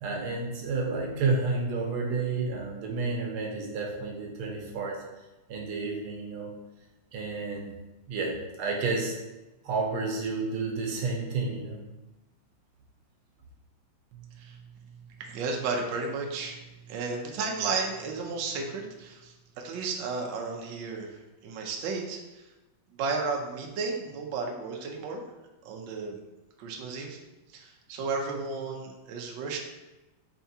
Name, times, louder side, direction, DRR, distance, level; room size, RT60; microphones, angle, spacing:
voice 1, 0.0-5.0 5.5-6.5 7.1-7.8 8.1-9.2 9.7-11.8, right 3 dB, 85° right, 0 dB, 1.7 m, -30 dB
voice 2, 14.1-21.2 21.4-22.4 22.9-25.2 25.6-26.2 26.6-27.2 27.5-29.6, right 4 dB, 70° right, 1 dB, 1.3 m, -33 dB
5.8 x 3.4 x 2.7 m, 1.0 s
omnidirectional pair, 2.3 m